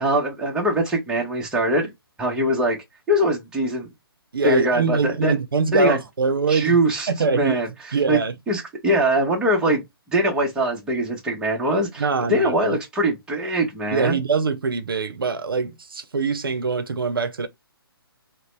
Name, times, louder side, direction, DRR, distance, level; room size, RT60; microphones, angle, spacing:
voice 1, 0.0-1.9 2.2-2.8 3.1-3.9 4.4-5.4 5.7-6.0 6.5-7.7 8.1-8.2 8.5-9.8 10.1-14.2, right 1 dB, 5° right, 0.9 m, -22 dB
voice 2, 4.3-6.8 7.1-7.6 7.9-8.3 12.0-12.8 13.9-17.5, right 4 dB, 65° right, 0.7 m, -23 dB
3.9 x 2.1 x 3.2 m
figure-of-eight pair, 135°, 13 cm